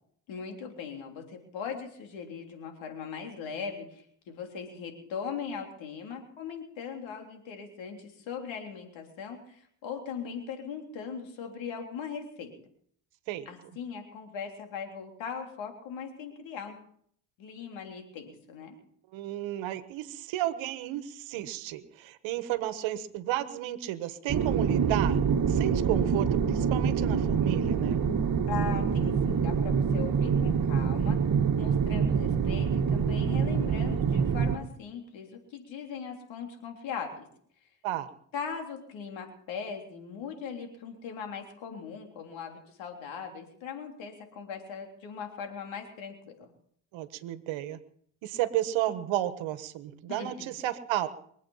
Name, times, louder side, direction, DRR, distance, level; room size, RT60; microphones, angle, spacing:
voice 1, 0.3-12.5 13.5-16.8 17.4-18.8 28.5-31.2 31.6-37.3 38.3-46.5 49.9-50.5, left 6 dB, 80° left, 3 dB, 3.6 m, -39 dB
voice 2, 19.1-25.2 25.5-28.0 37.8-38.1 46.9-47.8 48.2-51.1, right 13 dB, 80° right, 12 dB, 1.4 m, -32 dB
sound 1, 24.3-34.6, right 6 dB, 50° right, 1.7 m, -26 dB
24.0 x 8.5 x 5.7 m, 0.64 s
supercardioid pair, 60°, 45 cm